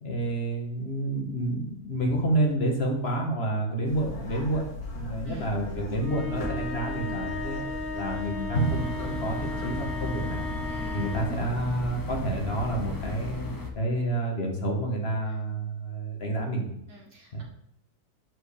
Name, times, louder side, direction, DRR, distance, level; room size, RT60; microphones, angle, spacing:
voice 1, 0.0-7.6 7.9-10.5 10.9-13.5 13.7-16.7 17.3-17.4, right 1 dB, 45° left, 0 dB, 1.6 m, -29 dB
sound 1, 3.8-13.3, left 1 dB, 75° left, 2.1 m, -38 dB
sound 2, 6.0-11.4, left 3 dB, 70° right, 1.6 m, -36 dB
sound 3, 8.5-13.7, left 1 dB, 20° left, 0.5 m, -36 dB
voice 2, 10.7-11.4 15.3-15.4 16.9-17.4, right 1 dB, 40° right, -4 dB, 2.1 m, -46 dB
7.7 x 6.2 x 3.4 m, 0.76 s
omnidirectional pair, 1.6 m